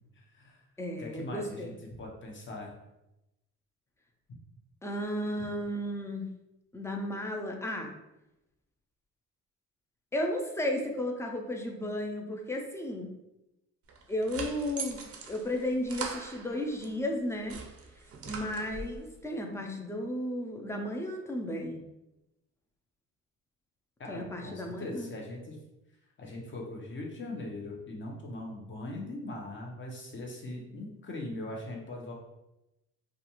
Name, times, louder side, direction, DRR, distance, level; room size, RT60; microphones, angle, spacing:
voice 1, 0.2-0.7 1.0-1.7 2.0-2.7 24.0-25.6 26.2-32.1, left 2 dB, 40° left, -1 dB, 0.8 m, -40 dB
voice 2, 0.8-1.7 4.8-6.3 6.7-7.9 10.1-13.1 14.1-15.0 15.3-17.6 18.3-21.8 24.1-25.1, left 1 dB, 10° left, 2 dB, 0.4 m, -34 dB
sound 1, 13.9-16.9 17.3-19.0, right 5 dB, 50° right, 0.5 m, -41 dB
2.4 x 2.3 x 2.9 m, 0.93 s
cardioid pair, 90°, 30 cm